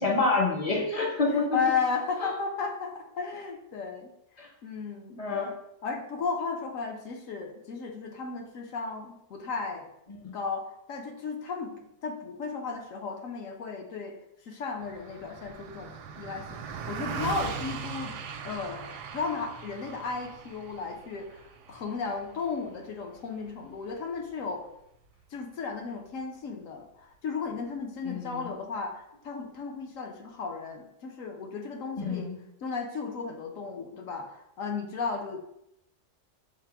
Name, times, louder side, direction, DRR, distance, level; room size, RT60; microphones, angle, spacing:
voice 1, 0.0-1.6 4.4-4.5 5.2-5.5 10.2-10.3 28.0-28.5 32.0-32.4, left 3 dB, 40° left, 0 dB, 0.5 m, -27 dB
voice 2, 1.2-4.1 4.6-5.5 5.8-9.9 10.3-11.7 12.0-14.1 14.5-18.2 18.4-24.7 25.3-32.3 32.6-35.4, left 5 dB, 65° left, 3 dB, 0.9 m, -34 dB
Car passing by, 14.8-24.4, right 6 dB, 85° right, 1.2 m, -40 dB
5.7 x 2.0 x 4.4 m, 0.79 s
omnidirectional pair, 1.7 m